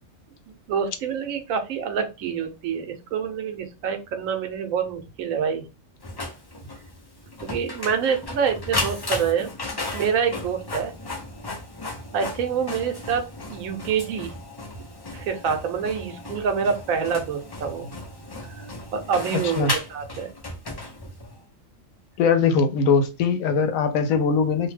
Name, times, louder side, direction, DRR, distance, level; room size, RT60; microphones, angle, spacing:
voice 1, 0.7-5.6 7.4-9.5 9.9-10.9 12.1-14.3 15.1-17.9 18.6-18.7 18.9-20.3, right 6 dB, 85° right, 6 dB, 1.1 m, -26 dB
Printer, 6.0-21.4, left 2 dB, 35° left, 0.3 m, -35 dB
voice 2, 22.2-24.7, left 5 dB, 90° left, 8 dB, 1.0 m, -21 dB
2.6 x 2.1 x 3.2 m, 0.28 s
omnidirectional pair, 1.4 m